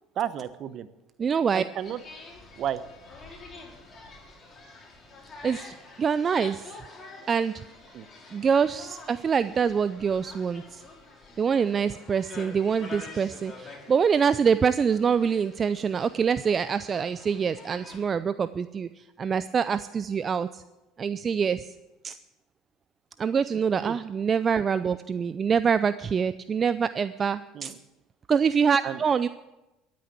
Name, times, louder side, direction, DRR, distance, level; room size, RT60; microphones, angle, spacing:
voice 1, 0.2-0.9 1.5-2.0 2.6-2.8 7.9-8.1 23.8-24.0 27.5-27.8 28.8-29.0, right 10 dB, 50° right, 14 dB, 0.9 m, -32 dB
voice 2, 1.2-1.6 5.4-5.7 6.0-6.6 7.3-7.5 8.3-10.8 11.4-18.9 19.2-20.6 21.0-21.7 22.0-22.1 23.2-27.7 28.3-29.3, right 6 dB, 35° right, 14 dB, 0.5 m, -25 dB
sound 1, 1.8-18.0, left 3 dB, 35° left, 5.0 m, -47 dB
13.5 x 9.4 x 8.2 m, 1.0 s
hypercardioid pair, 70°, 0 cm